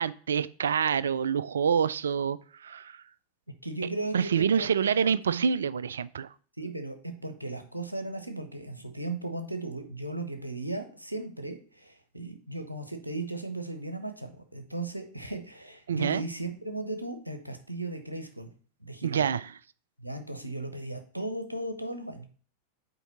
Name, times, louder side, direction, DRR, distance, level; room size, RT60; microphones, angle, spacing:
voice 1, 0.0-2.4 2.6-3.0 4.1-6.3 15.9-16.2 19.0-19.4, right 7 dB, 65° right, 0.3 m, -26 dB
voice 2, 3.6-5.4 6.6-18.5 18.8-19.3 20.0-22.3, right 2 dB, 85° right, 0.9 m, -36 dB
7.0 x 4.7 x 4.1 m
figure-of-eight pair, 90°, 0 cm